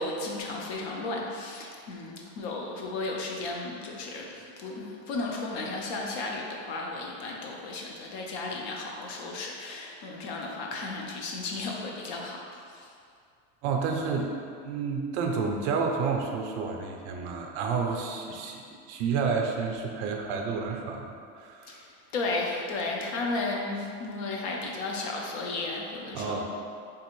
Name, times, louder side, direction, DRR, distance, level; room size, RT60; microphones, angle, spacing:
voice 1, 0.0-12.9 21.7-26.4, left 2 dB, 60° left, 0 dB, 0.6 m, -34 dB
voice 2, 13.6-14.3 14.6-21.8 26.1-26.4, right 5 dB, 65° right, 2 dB, 0.5 m, -30 dB
3.4 x 2.4 x 3.0 m, 2.3 s
supercardioid pair, 170°, 38 cm